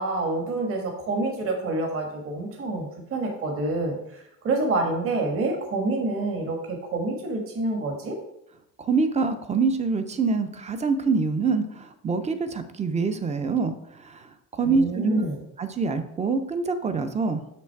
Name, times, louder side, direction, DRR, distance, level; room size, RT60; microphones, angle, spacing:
voice 1, 0.0-3.9 4.4-8.2 14.6-15.4, right 2 dB, 45° right, 2 dB, 1.4 m, -27 dB
voice 2, 8.8-13.7 14.5-15.2 15.6-17.4, right 4 dB, 20° right, 9 dB, 0.5 m, -25 dB
6.4 x 6.0 x 4.5 m, 0.78 s
cardioid pair, 170°, 32 cm